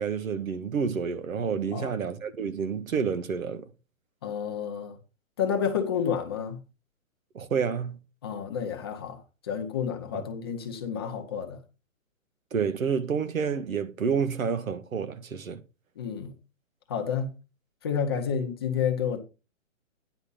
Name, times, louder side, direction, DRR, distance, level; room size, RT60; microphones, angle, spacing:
voice 1, 0.0-3.6 7.3-8.0 10.1-10.2 12.5-15.6, right 6 dB, 85° right, 1.4 m, -29 dB
voice 2, 4.2-4.9 5.4-6.6 8.2-11.6 16.0-16.3 16.9-17.3 17.8-19.2, left 7 dB, 20° left, 0.8 m, -30 dB
9.9 x 5.2 x 5.3 m
hypercardioid pair, 170°, 40 cm